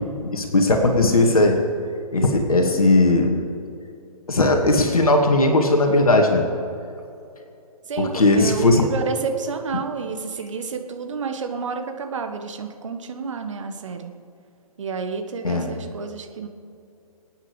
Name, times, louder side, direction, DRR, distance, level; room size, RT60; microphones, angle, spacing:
voice 1, 0.2-1.6 2.1-3.4 4.3-6.5 8.0-8.8 15.4-15.7, left 2 dB, 65° left, 3 dB, 2.3 m, -18 dB
voice 2, 7.9-14.1 14.8-16.5, right 5 dB, 50° right, 6 dB, 1.6 m, -30 dB
25.5 x 9.2 x 5.1 m, 2.7 s
figure-of-eight pair, 130°, 20 cm